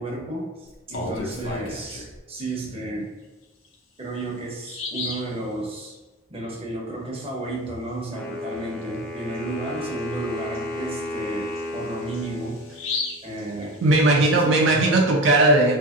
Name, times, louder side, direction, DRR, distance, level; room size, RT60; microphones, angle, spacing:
voice 1, 0.0-3.1 4.0-6.0 6.3-13.8 14.2-14.6, right 2 dB, 30° right, -3 dB, 0.7 m, -32 dB
Bird vocalization bird call bird song, 0.7-2.2 3.6-3.7 4.2-4.3 4.6-5.3 8.8-9.0 9.3-9.4 10.0-14.2, left 3 dB, 90° left, 0.5 m, -35 dB
Wind instrument woodwind instrument, 8.1-13.1, left 1 dB, 5° left, 0.4 m, -34 dB
voice 2, 13.8-15.8, right 2 dB, 70° right, 1 dB, 0.4 m, -18 dB
2.7 x 2.6 x 2.4 m, 1.2 s
head